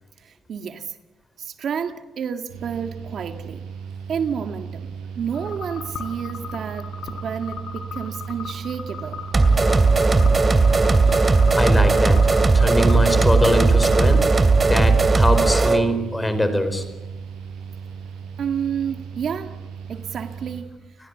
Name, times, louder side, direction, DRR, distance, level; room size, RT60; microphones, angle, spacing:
voice 1, 0.2-1.0 1.4-3.6 4.1-4.9 5.2-9.2 18.4-19.6 19.9-20.7, right 7 dB, 60° right, 7 dB, 1.8 m, -30 dB
Mechanical fan, 2.5-20.6, right 6 dB, 90° right, 5.6 m, -36 dB
sound 1, 5.3-14.2, left 6 dB, 65° left, 5.0 m, -38 dB
sound 2, 9.3-15.9, right 3 dB, 25° right, 2.6 m, -17 dB
voice 2, 11.5-14.3 14.6-16.8, left 1 dB, 10° left, 11 dB, 4.6 m, -23 dB
29.5 x 19.5 x 8.3 m, 1.1 s
cardioid pair, 90°, 0 cm